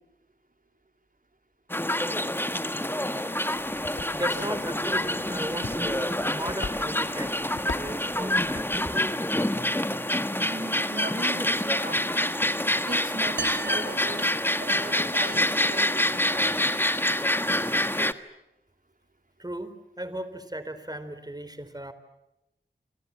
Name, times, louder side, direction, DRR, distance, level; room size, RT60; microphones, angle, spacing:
sound 1, 1.7-18.1, left 1 dB, 10° left, 1.5 m, -27 dB
voice 1, 3.1-8.9 19.4-21.9, right 1 dB, 20° right, 11 dB, 4.1 m, -37 dB
sound 2, 3.5-9.1, left 3 dB, 85° left, 1.9 m, -42 dB
voice 2, 10.4-12.3 12.8-14.3 14.6-16.4, right 2 dB, 50° right, 6 dB, 3.4 m, -38 dB
sound 3, 13.4-15.1, right 3 dB, 70° right, 2.7 m, -37 dB
27.5 x 27.0 x 7.4 m, 0.90 s
wide cardioid pair, 45°, 19 cm